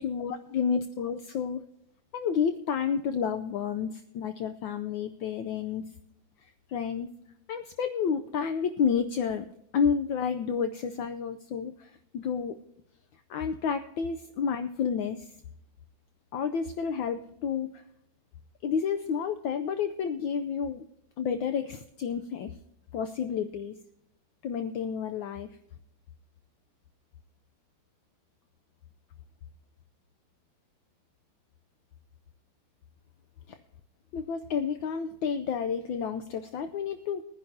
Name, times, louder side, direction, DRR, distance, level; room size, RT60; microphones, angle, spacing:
voice 1, 0.0-1.6 2.1-5.8 6.4-7.1 7.5-9.5 9.7-12.6 13.3-15.3 16.3-17.8 18.6-20.8 21.2-22.6 22.9-23.8 24.4-25.5 33.5-33.6 34.1-37.2, left 6 dB, 70° left, 8 dB, 1.3 m, -30 dB
21.0 x 10.5 x 2.8 m, 0.78 s
omnidirectional pair, 2.4 m